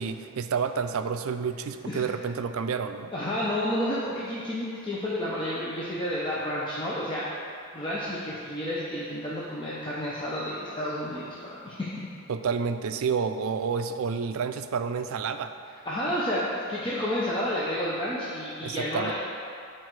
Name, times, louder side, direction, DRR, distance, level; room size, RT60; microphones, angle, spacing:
voice 1, 0.0-3.1 12.3-15.5 18.6-19.1, right 6 dB, 75° right, 9 dB, 0.4 m, -29 dB
voice 2, 3.1-7.2 7.7-11.8 15.8-19.1, equal, 25° left, -8 dB, 0.9 m, -30 dB
10.0 x 4.5 x 4.7 m, 2.4 s
head